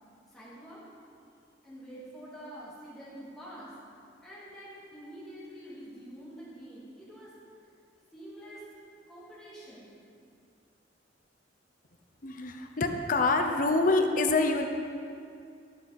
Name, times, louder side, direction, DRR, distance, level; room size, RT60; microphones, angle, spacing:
voice 1, 0.3-0.8 1.6-3.7 4.2-7.3 8.1-8.6 9.1-9.9, equal, 5° left, -9 dB, 2.4 m, -46 dB
voice 2, 12.2-14.7, left 3 dB, 45° left, 5 dB, 0.7 m, -26 dB
13.0 x 5.7 x 4.1 m, 2.4 s
head